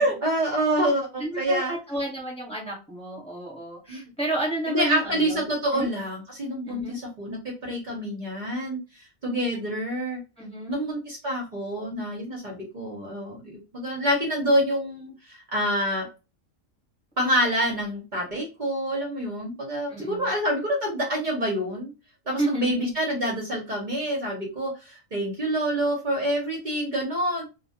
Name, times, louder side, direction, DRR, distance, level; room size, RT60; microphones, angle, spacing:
voice 1, 0.0-1.7 3.9-4.0 4.7-8.8 9.2-10.2 10.7-16.1 17.2-21.9 22.3-27.4, equal, 50° right, -1 dB, 0.6 m, -27 dB
voice 2, 1.2-5.9 6.7-7.0 10.4-10.8 19.9-20.3 22.4-22.9, right 1 dB, 5° left, -3 dB, 0.7 m, -31 dB
2.2 x 2.2 x 2.7 m, 0.30 s
omnidirectional pair, 1.5 m